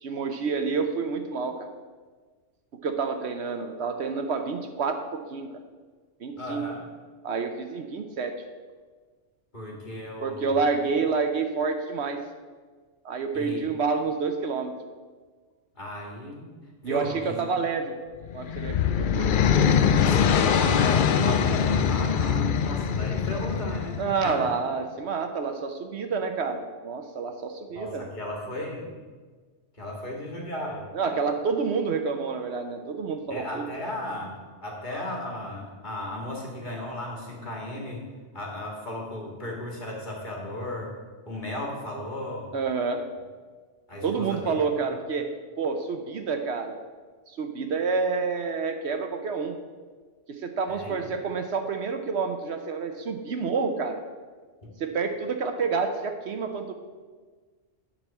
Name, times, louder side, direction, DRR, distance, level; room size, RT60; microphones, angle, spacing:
voice 1, 0.0-1.7 2.8-5.5 6.2-6.7 7.2-8.4 10.2-12.2 13.0-14.7 16.8-17.9 18.3-19.3 24.0-28.0 30.9-33.7 42.5-43.0 44.0-45.3 45.6-46.8 47.3-49.6 50.3-54.0 54.8-56.7, right 5 dB, 65° right, 6 dB, 1.0 m, -28 dB
voice 2, 6.4-6.8 9.5-10.6 13.3-13.7 15.7-16.5 16.8-17.4 20.0-24.5 27.7-28.9 29.7-31.2 33.3-38.1 38.3-40.9 41.3-42.5 43.9-44.6 50.7-51.0 54.6-54.7, left 1 dB, 40° left, -2 dB, 2.0 m, -35 dB
sound 1, 18.2-24.3, left 7 dB, 60° left, 0.6 m, -23 dB
10.5 x 4.2 x 7.1 m, 1.5 s
omnidirectional pair, 1.2 m